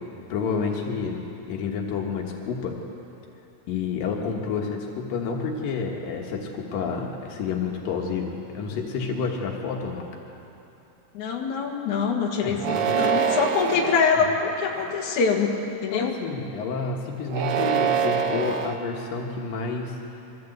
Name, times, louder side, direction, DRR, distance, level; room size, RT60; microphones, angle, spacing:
voice 1, 0.3-1.2 1.5-2.8 3.7-10.1 12.4-13.0 14.2-14.3 15.9-20.0, left 5 dB, 80° left, 1 dB, 3.2 m, -29 dB
voice 2, 11.1-16.1, left 5 dB, 65° left, 0 dB, 3.1 m, -24 dB
sound 1, 12.6-14.1 14.8-15.3 17.3-18.8, right 7 dB, 80° right, 2.6 m, -25 dB
23.5 x 15.0 x 8.0 m, 2.9 s
omnidirectional pair, 3.9 m